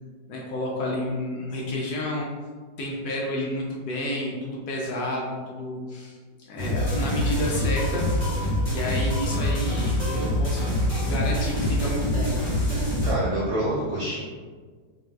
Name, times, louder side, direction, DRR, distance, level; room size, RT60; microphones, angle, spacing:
voice 1, 0.3-2.3 2.8-6.2 6.5-8.1 8.7-12.4, left 1 dB, 70° left, -3 dB, 1.0 m, -30 dB
sound 1, 6.6-13.1, equal, 50° left, 0.5 m, -25 dB
voice 2, 13.0-14.2, right 1 dB, 65° right, -8 dB, 0.6 m, -27 dB
4.1 x 2.2 x 2.2 m, 1.5 s
omnidirectional pair, 2.0 m